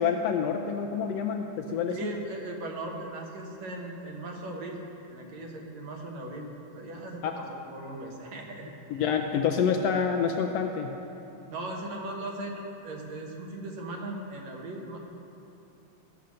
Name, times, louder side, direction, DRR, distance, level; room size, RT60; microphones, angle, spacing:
voice 1, 0.0-2.1 7.2-7.4 8.9-11.0, left 7 dB, 75° left, 4 dB, 1.6 m, -27 dB
voice 2, 1.9-4.8 5.1-6.5 6.7-9.1 11.5-15.0, right 2 dB, 70° right, 0 dB, 2.5 m, -38 dB
16.0 x 7.1 x 6.4 m, 2.9 s
omnidirectional pair, 3.3 m